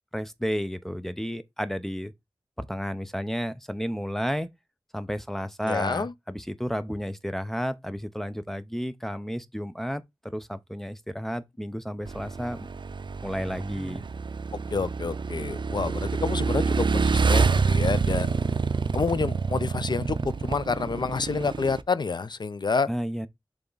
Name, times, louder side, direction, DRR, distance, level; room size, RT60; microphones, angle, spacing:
voice 1, 0.1-2.1 2.6-4.5 4.9-12.7 13.2-14.0 22.9-23.3, equal, 5° left, 0.6 m, -32 dB
voice 2, 5.6-6.1 14.7-22.9, left 4 dB, 55° left, 0.4 m, -29 dB
Motorcycle / Engine, 12.1-21.8, right 4 dB, 60° right, 0.5 m, -27 dB
6.9 x 3.5 x 3.9 m
wide cardioid pair, 80°, 9 cm